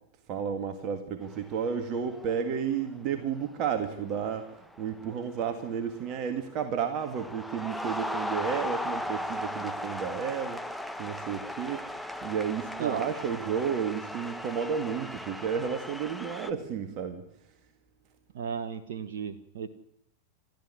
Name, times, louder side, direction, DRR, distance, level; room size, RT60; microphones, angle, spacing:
voice 1, 0.3-17.2, right 7 dB, 40° right, 7 dB, 2.0 m, -32 dB
sound 1, 1.2-1.7 2.0-2.5 3.4-3.6 4.0-6.3 6.6-16.5, left 1 dB, ahead, 1.4 m, -37 dB
voice 2, 18.3-19.7, right 6 dB, 55° right, 9 dB, 1.4 m, -35 dB
30.0 x 14.0 x 9.9 m, 0.74 s
figure-of-eight pair, 90°, 0 cm